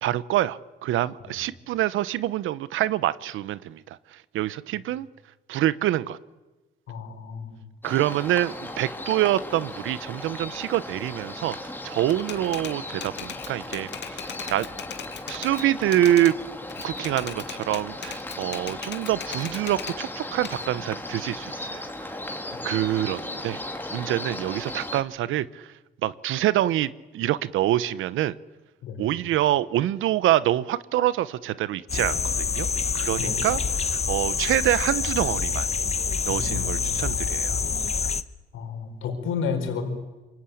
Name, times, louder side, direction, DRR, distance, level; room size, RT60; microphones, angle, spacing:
voice 1, 0.0-5.1 5.5-6.2 7.8-14.2 14.5-14.7 15.3-16.4 16.8-22.1 22.6-23.6 23.9-25.7 26.0-28.3 29.0-32.7 32.9-35.7 36.3-37.6, right 13 dB, 85° right, 17 dB, 0.9 m, -26 dB
voice 2, 6.9-7.6 28.8-29.0 33.2-33.5 36.3-36.9 38.5-39.8, left 6 dB, 85° left, 4 dB, 5.2 m, -31 dB
sound 1, 7.8-25.0, left 1 dB, 10° left, 2.7 m, -36 dB
Typewriter, 12.1-16.4 16.7-20.0 20.4-22.1, left 8 dB, 60° left, 2.0 m, -39 dB
sound 2, 31.9-38.2, left 5 dB, 30° left, 1.1 m, -26 dB
27.0 x 23.5 x 8.6 m, 1.2 s
cardioid pair, 90°, 20 cm